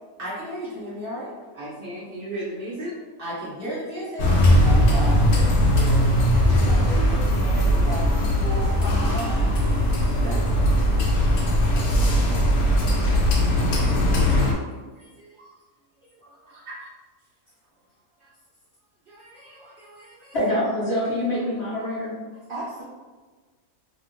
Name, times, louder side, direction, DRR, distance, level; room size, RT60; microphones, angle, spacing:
voice 1, 0.2-1.3 3.2-4.4 10.3-10.4 16.5-16.9, equal, 45° right, -8 dB, 1.0 m, -33 dB
voice 2, 1.5-3.0 4.6-6.1 6.4-9.5 9.9-10.7 11.1-12.0 14.4-14.5 14.9-15.5 16.0-16.6 18.2-18.3 19.1-20.4 22.3-22.8, right 1 dB, 65° right, -5 dB, 0.5 m, -36 dB
sound 1, 4.2-14.5, equal, 85° left, 1.1 m, -19 dB
voice 3, 20.3-22.2, left 1 dB, 50° left, -8 dB, 1.2 m, -25 dB
2.7 x 2.5 x 3.0 m, 1.4 s
omnidirectional pair, 1.5 m